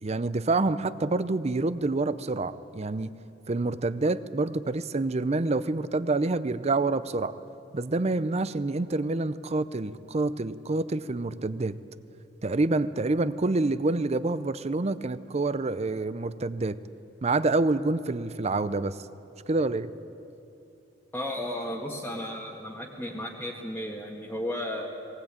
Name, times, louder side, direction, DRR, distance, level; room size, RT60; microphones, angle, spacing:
voice 1, 0.0-3.1 3.5-7.3 7.7-11.8 12.4-16.8 17.2-19.0 19.5-19.9, right 2 dB, 35° right, 14 dB, 0.6 m, -27 dB
voice 2, 21.1-24.9, left 1 dB, 10° left, -4 dB, 1.7 m, -34 dB
19.0 x 19.0 x 8.9 m, 2.7 s
head